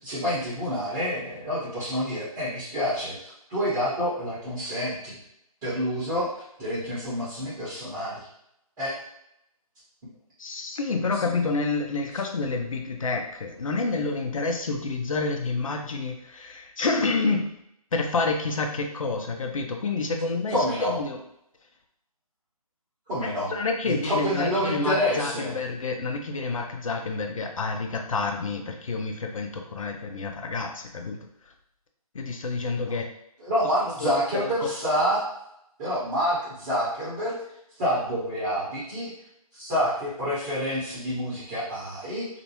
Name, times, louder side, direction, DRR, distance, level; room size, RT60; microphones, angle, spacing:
voice 1, 0.0-5.2 5.6-8.3 8.8-9.0 20.5-21.0 23.1-23.5 23.8-25.5 33.4-35.2 35.8-37.4 37.8-39.1 39.5-42.3, equal, 15° right, -10 dB, 0.8 m, -28 dB
voice 2, 10.4-17.5 17.9-21.2 23.5-31.2 32.1-33.1 34.0-34.5, left 3 dB, 60° left, 3 dB, 0.5 m, -28 dB
2.5 x 2.1 x 2.9 m, 0.77 s
figure-of-eight pair, 150°, 19 cm